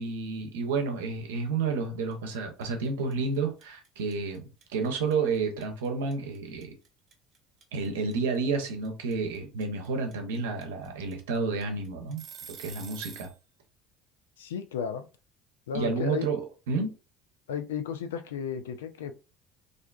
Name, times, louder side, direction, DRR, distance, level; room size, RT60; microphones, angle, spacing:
voice 1, 0.0-4.4 4.7-6.7 7.7-12.2 12.6-13.3 15.7-16.9, right 4 dB, 80° right, 0.6 m, -30 dB
sound 1, 2.1-2.4 2.6-13.4, right 7 dB, 50° right, 0.8 m, -47 dB
voice 2, 14.4-15.0 15.7-16.3 17.5-19.1, left 8 dB, 85° left, 0.3 m, -34 dB
2.4 x 2.3 x 2.2 m
hypercardioid pair, 70°, 0 cm